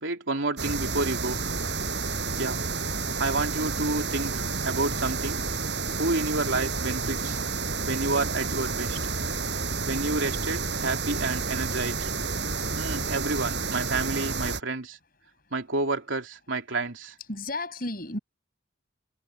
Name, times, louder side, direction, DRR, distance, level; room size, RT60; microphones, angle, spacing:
voice 1, 0.0-1.4 2.4-2.6 3.2-5.4 6.0-7.4 7.8-9.1 9.8-12.1 12.8-15.0 15.5-17.1, right 3 dB, 85° right, 3.3 m, -29 dB
sound 1, 0.6-14.6, right 4 dB, 60° right, 6.8 m, -30 dB
voice 2, 9.4-9.9 12.6-12.9 15.3-15.4 17.3-18.2, left 2 dB, 50° left, 7.0 m, -36 dB
head